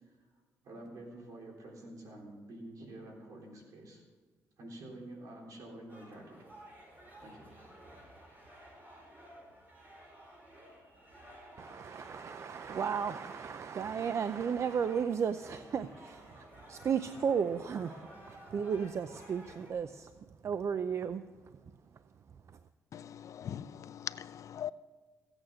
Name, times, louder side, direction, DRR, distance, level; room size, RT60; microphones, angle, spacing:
voice 1, 0.6-4.0 4.6-6.5 7.2-7.5, right 1 dB, 75° right, 0 dB, 3.7 m, -48 dB
sound 1, 5.9-19.7, right 1 dB, 35° right, 4.9 m, -54 dB
voice 2, 11.6-20.1 20.4-21.2, right 7 dB, 50° right, 12 dB, 0.5 m, -34 dB
voice 3, 22.9-24.7, left 9 dB, 60° left, 16 dB, 0.4 m, -41 dB
15.5 x 8.9 x 6.4 m, 1.4 s
cardioid pair, 100°, 6 cm